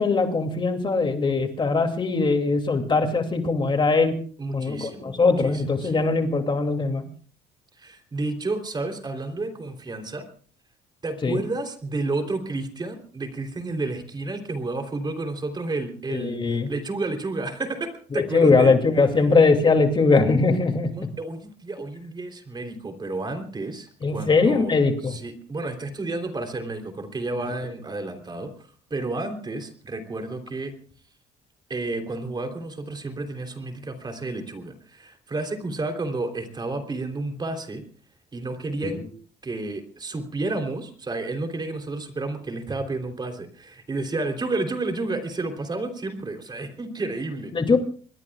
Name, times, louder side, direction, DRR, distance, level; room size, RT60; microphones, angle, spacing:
voice 1, 0.0-4.1 4.5-7.0 11.2-11.4 16.1-16.7 18.1-20.9 24.0-25.1 47.5-47.8, left 4 dB, 30° left, 5 dB, 2.6 m, -21 dB
voice 2, 4.4-6.2 7.8-10.3 11.0-18.8 20.9-28.5 28.9-30.8 31.7-37.8 38.3-39.0 39.4-47.5, right 2 dB, 25° right, 6 dB, 3.4 m, -31 dB
27.0 x 21.0 x 2.4 m, 0.44 s
cardioid pair, 110°, 17 cm